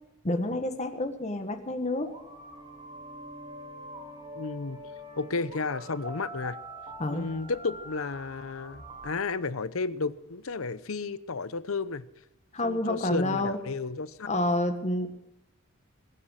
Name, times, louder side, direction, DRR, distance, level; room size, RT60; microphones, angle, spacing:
voice 1, 0.2-2.1 7.0-7.3 12.5-13.6 14.3-15.1, left 1 dB, 35° left, 7 dB, 1.6 m, -28 dB
sound 1, 2.0-9.2, right 1 dB, 25° right, 3.4 m, -44 dB
voice 2, 4.3-4.8 5.2-6.6 7.1-12.1 12.6-14.5, left 4 dB, 90° left, 16 dB, 0.8 m, -33 dB
22.0 x 10.0 x 6.5 m, 0.84 s
head